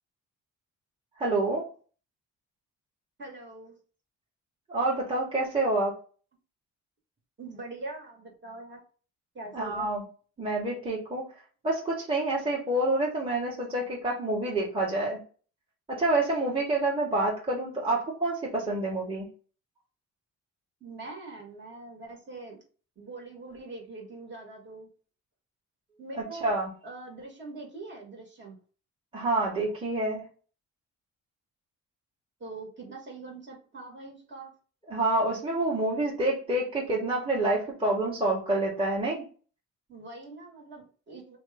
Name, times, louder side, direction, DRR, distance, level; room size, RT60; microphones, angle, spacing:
voice 1, 1.2-1.7 4.7-6.0 9.5-10.0 10.4-11.2 11.6-15.2 15.9-19.3 26.4-26.7 29.1-30.2 34.9-39.2, right 2 dB, 15° right, -5 dB, 1.3 m, -27 dB
voice 2, 3.2-3.7 7.4-8.8 9.3-9.9 20.8-22.6 23.0-24.9 26.0-26.6 26.8-28.6 32.4-34.5 39.9-41.4, right 2 dB, 40° right, 0 dB, 1.5 m, -43 dB
2.9 x 2.3 x 3.4 m, 0.38 s
cardioid pair, 90°, 30 cm